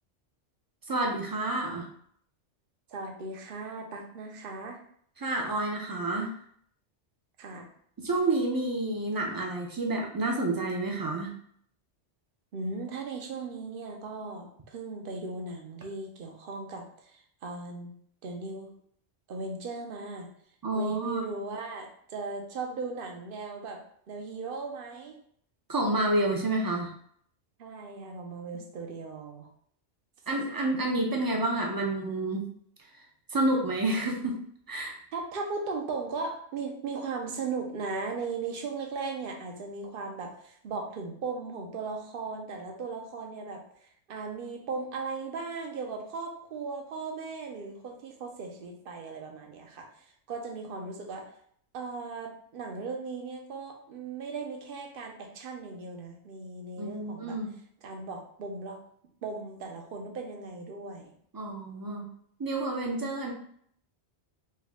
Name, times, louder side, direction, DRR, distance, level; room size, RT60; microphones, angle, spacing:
voice 1, 0.9-1.8 5.2-6.3 8.0-11.3 20.6-21.2 25.7-26.9 30.3-32.4 33.3-34.4 34.7-35.0 56.8-57.5 61.3-62.1 62.4-63.3, right 2 dB, 25° right, 1 dB, 0.5 m, -29 dB
voice 2, 2.9-4.8 7.4-7.7 12.5-17.9 18.2-18.7 19.3-20.3 20.7-23.8 24.1-25.2 27.6-29.5 35.1-43.6 44.1-51.3 51.7-57.4 57.8-58.8 59.2-61.1, right 4 dB, 55° right, 3 dB, 0.8 m, -37 dB
4.4 x 2.3 x 3.5 m, 0.64 s
omnidirectional pair, 1.2 m